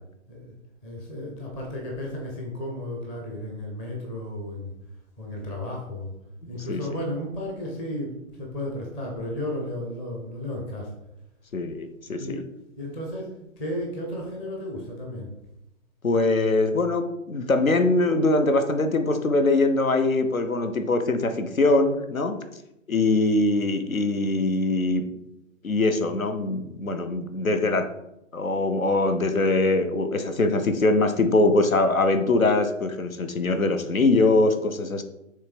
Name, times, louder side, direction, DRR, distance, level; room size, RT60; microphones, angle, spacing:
voice 1, 0.8-4.7 5.2-6.1 6.5-10.9 12.2-12.5 12.8-15.3, left 1 dB, 10° left, -1 dB, 0.5 m, -33 dB
voice 2, 11.5-12.4 16.0-22.4 22.9-25.1 25.6-27.9 28.3-35.0, left 2 dB, 85° left, 8 dB, 1.0 m, -22 dB
6.6 x 3.4 x 5.2 m, 0.85 s
figure-of-eight pair, 130°, 40 cm